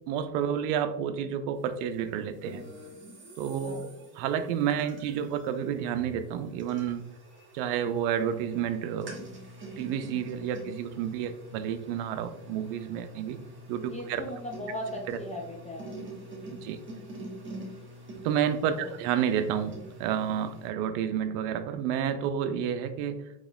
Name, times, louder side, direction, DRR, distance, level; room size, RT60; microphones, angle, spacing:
voice 1, 0.1-2.7 3.4-3.9 4.2-7.0 7.5-9.2 9.8-13.4 13.7-14.2 15.1-15.2 16.5-16.8 18.2-23.2, right 8 dB, 75° right, 10 dB, 0.6 m, -30 dB
sound 1, 2.4-20.7, right 1 dB, 25° right, 1.2 m, -46 dB
voice 2, 3.6-4.1 13.9-16.1 18.7-19.0, left 1 dB, 15° left, -1 dB, 0.3 m, -39 dB
3.7 x 2.9 x 2.3 m, 0.81 s
supercardioid pair, 115°, 46 cm